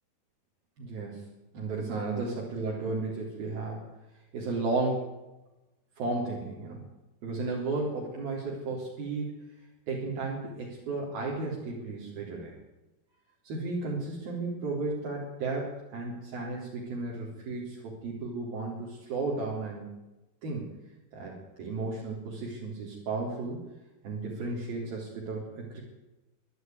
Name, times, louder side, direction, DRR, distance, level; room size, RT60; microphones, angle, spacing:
voice 1, 0.8-1.2 1.5-3.8 4.3-5.1 6.0-6.8 7.2-9.5 9.9-12.5 13.4-19.9 20.4-20.7 21.1-23.6 24.0-25.8, right 3 dB, 65° right, -5 dB, 5.6 m, -34 dB
23.5 x 13.0 x 9.6 m, 1.0 s
omnidirectional pair, 4.7 m